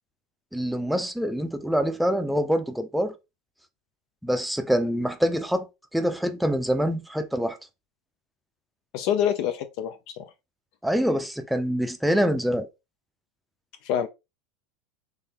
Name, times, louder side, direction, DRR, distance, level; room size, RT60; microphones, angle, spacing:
voice 1, 0.5-3.1 4.2-5.7 5.9-7.6 10.8-12.7, equal, ahead, 0.5 m, -25 dB
voice 2, 8.9-10.2 13.8-14.1, left 9 dB, 60° left, 0.5 m, -26 dB
3.7 x 3.0 x 2.9 m
supercardioid pair, 120°, 0 cm